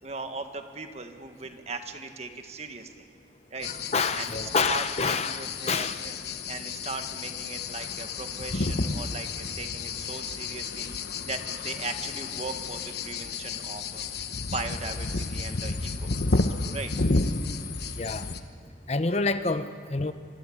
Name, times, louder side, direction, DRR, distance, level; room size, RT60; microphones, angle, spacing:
voice 1, 0.0-3.1 3.5-3.7 4.1-6.1 6.5-14.0 14.5-16.9 18.6-18.7, right 3 dB, 35° right, 6 dB, 1.6 m, -38 dB
sound 1, 3.6-18.4, left 3 dB, 55° left, 1.1 m, -31 dB
voice 2, 3.6-6.0 18.0-18.3 18.9-20.1, left 4 dB, 35° left, 10 dB, 0.8 m, -28 dB
26.0 x 24.0 x 8.6 m, 2.2 s
head